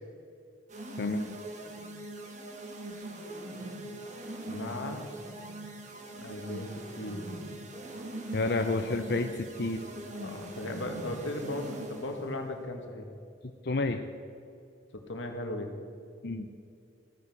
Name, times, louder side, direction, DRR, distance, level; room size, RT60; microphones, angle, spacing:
sound 1, 0.7-12.3, right 1 dB, 40° right, 1.5 m, -42 dB
voice 1, 1.0-1.3 8.3-9.3 9.6-9.8 13.6-14.0 16.2-16.5, left 2 dB, 55° left, 5 dB, 0.6 m, -29 dB
voice 2, 4.5-5.0 6.2-7.3 10.1-13.1 15.1-15.7, left 1 dB, 90° left, 4 dB, 1.9 m, -37 dB
15.5 x 9.7 x 6.2 m, 2.5 s
head